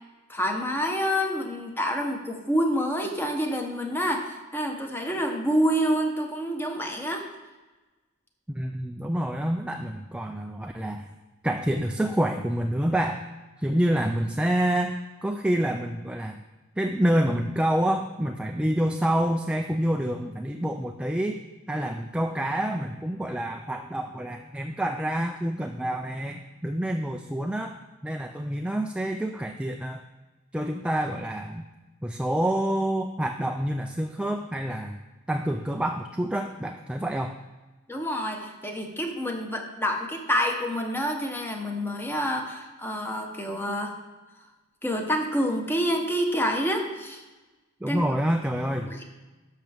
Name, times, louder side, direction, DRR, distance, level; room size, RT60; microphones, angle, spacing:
voice 1, 0.3-7.3 37.9-44.0 44.8-47.2 47.9-48.0 48.9-49.0, equal, 10° left, 2 dB, 1.0 m, -27 dB
voice 2, 8.5-11.1 11.4-13.2 13.6-14.9 15.2-16.4 16.8-21.4 21.7-27.8 28.0-30.0 30.5-31.7 32.0-35.0 35.3-37.4 47.8-48.9, right 1 dB, 5° right, 4 dB, 0.3 m, -27 dB
11.5 x 6.6 x 3.5 m, 1.2 s
head